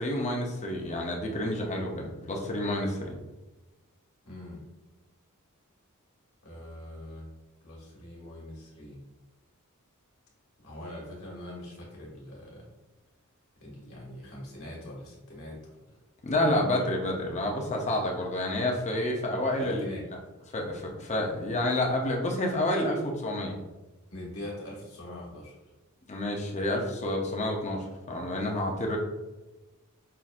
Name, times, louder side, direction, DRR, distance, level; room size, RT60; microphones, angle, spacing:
voice 1, 0.0-3.2 16.2-19.8 20.5-23.5 26.1-29.0, left 1 dB, 30° left, 1 dB, 0.6 m, -29 dB
voice 2, 4.2-4.6 6.4-7.3 7.6-9.0 10.6-12.7 13.6-15.8 16.4-16.7 19.6-20.1 24.1-25.5, left 1 dB, 65° left, -4 dB, 1.4 m, -42 dB
5.6 x 2.5 x 2.4 m, 1.1 s
head